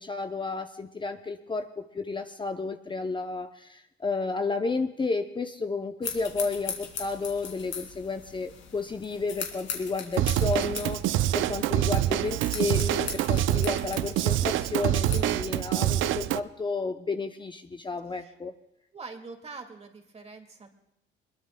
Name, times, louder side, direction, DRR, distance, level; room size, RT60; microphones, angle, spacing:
voice 1, 0.0-18.5, left 4 dB, 25° left, 7 dB, 0.7 m, -32 dB
sound 1, 6.0-15.4, left 6 dB, 75° left, 2.5 m, -40 dB
Drum kit / Drum, 10.2-16.4, right 13 dB, 80° right, 0.5 m, -26 dB
voice 2, 18.9-20.7, right 4 dB, 30° right, 4 dB, 2.2 m, -44 dB
22.0 x 21.0 x 2.3 m, 0.80 s
cardioid pair, 90°, 20 cm